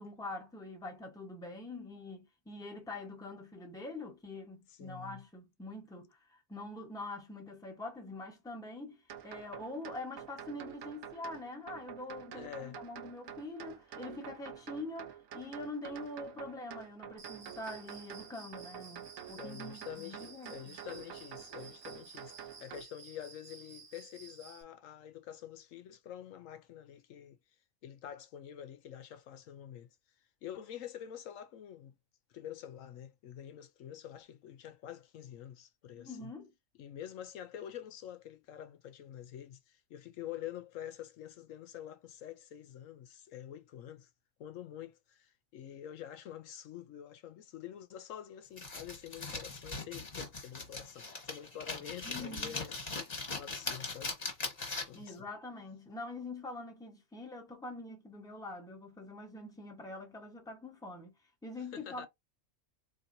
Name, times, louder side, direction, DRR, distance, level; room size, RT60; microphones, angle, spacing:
voice 1, 0.0-20.8 36.0-36.5 52.0-52.6 54.9-61.2 61.4-62.1, left 2 dB, 5° left, 0.9 m, -44 dB
voice 2, 4.7-5.2 12.3-12.8 19.4-27.4 27.8-30.0 30.4-31.9 32.3-36.3 36.8-44.1 44.4-54.2 54.8-55.3 61.6-62.1, left 10 dB, 75° left, 1.0 m, -47 dB
sound 1, 9.1-22.8, right 9 dB, 80° right, 1.1 m, -48 dB
Cricket, 17.2-24.6, right 5 dB, 45° right, 1.0 m, -54 dB
sound 2, 48.6-55.1, left 3 dB, 30° left, 1.2 m, -40 dB
4.2 x 2.8 x 2.6 m
omnidirectional pair, 1.4 m